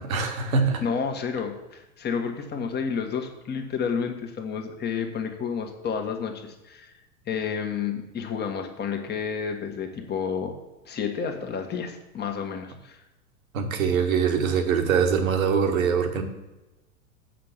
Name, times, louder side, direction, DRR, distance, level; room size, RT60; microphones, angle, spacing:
voice 1, 0.0-0.8 13.5-16.2, right 6 dB, 70° right, 5 dB, 1.9 m, -23 dB
voice 2, 0.8-6.9 7.2-10.6 10.8-13.0, left 6 dB, 25° left, 4 dB, 1.6 m, -30 dB
7.6 x 5.9 x 7.3 m, 1.0 s
figure-of-eight pair, 95°, 43 cm